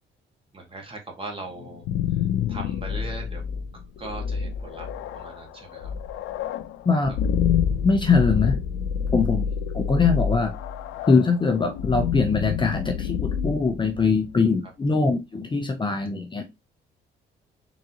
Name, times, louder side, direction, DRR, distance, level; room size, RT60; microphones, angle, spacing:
voice 1, 0.5-1.9 2.5-3.5 4.0-4.9 5.1-5.9, right 2 dB, 25° right, 1.7 m, -39 dB
sound 1, 1.6-14.5, left 8 dB, 90° left, 0.4 m, -28 dB
voice 2, 7.8-8.6 9.1-9.4 9.7-10.5 11.0-16.4, left 4 dB, 25° left, 0.7 m, -22 dB
3.9 x 3.7 x 2.9 m
cardioid pair, 90°, 20 cm